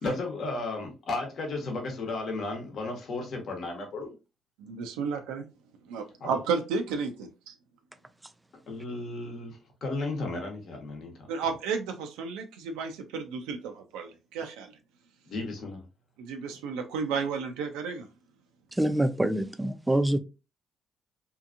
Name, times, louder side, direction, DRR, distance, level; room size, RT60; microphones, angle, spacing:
voice 1, 0.0-4.1 6.2-6.4 8.7-11.1 11.4-11.5 15.3-15.8, left 2 dB, 60° left, 0.9 m, -34 dB
voice 2, 4.6-5.4 5.8-7.5 11.3-14.7 16.2-18.1, right 5 dB, 90° right, 0.4 m, -32 dB
voice 3, 18.7-20.2, right 1 dB, 10° right, 0.4 m, -25 dB
2.7 x 2.5 x 2.4 m
supercardioid pair, 65°, 0 cm